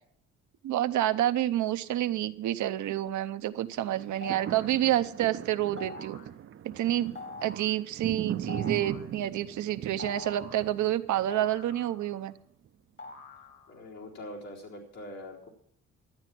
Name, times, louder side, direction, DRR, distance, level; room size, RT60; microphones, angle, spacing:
voice 1, 0.6-6.2 6.8-7.1 7.4-12.3, right 13 dB, 75° right, 11 dB, 0.8 m, -28 dB
sound 1, 3.9-12.1 12.7-12.8, right 9 dB, 45° right, 0.5 m, -39 dB
sound 2, 4.2-4.8 5.8-6.3 7.2-7.8 8.5-9.1 10.0-10.7 11.3-12.3 13.0-13.8, left 3 dB, 40° left, 1.5 m, -44 dB
voice 2, 13.7-15.5, left 1 dB, 80° left, -4 dB, 4.1 m, -43 dB
12.0 x 8.9 x 6.0 m, 0.66 s
cardioid pair, 90°, 30 cm